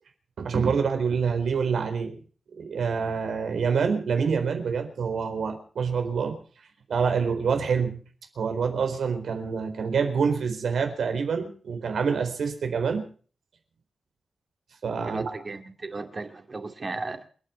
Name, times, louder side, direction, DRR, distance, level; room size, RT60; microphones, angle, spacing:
voice 1, 0.4-2.2 2.6-6.4 6.9-8.0 8.4-13.1 14.8-15.2, right 6 dB, 85° right, 4.2 m, -26 dB
voice 2, 15.0-17.3, right 3 dB, 35° right, 2.4 m, -35 dB
29.0 x 9.8 x 4.5 m
wide cardioid pair, 155°, 0 cm